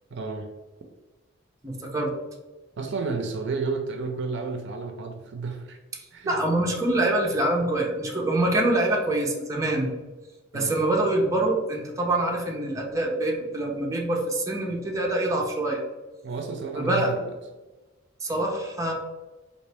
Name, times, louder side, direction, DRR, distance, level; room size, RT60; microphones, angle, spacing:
voice 1, 0.1-0.5 2.8-5.8 6.1-6.4 10.5-10.8 16.2-17.4, right 4 dB, 60° right, 5 dB, 0.5 m, -31 dB
voice 2, 1.6-2.1 6.3-9.9 10.5-15.8 16.7-17.1 18.2-18.9, right 1 dB, 15° right, -1 dB, 0.7 m, -25 dB
4.1 x 2.9 x 3.3 m, 1.2 s
head